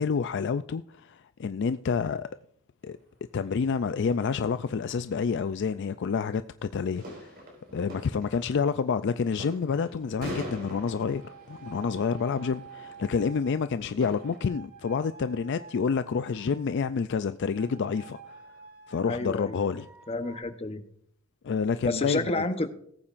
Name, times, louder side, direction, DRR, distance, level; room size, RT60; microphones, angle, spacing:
voice 1, 0.0-2.3 2.8-3.0 3.3-7.3 7.7-11.2 11.5-18.4 18.9-19.9 21.4-22.4, left 5 dB, 55° left, 0.4 m, -28 dB
sound 1, 2.9-3.0 3.7-6.1 6.7-14.4, equal, 45° right, 4.5 m, -44 dB
sound 2, 10.8-13.8 14.2-16.8 17.5-20.4, right 6 dB, 65° right, 4.5 m, -49 dB
voice 2, 19.1-19.7 20.1-20.8 21.8-22.7, left 2 dB, 30° left, 0.9 m, -30 dB
19.0 x 8.6 x 2.5 m
head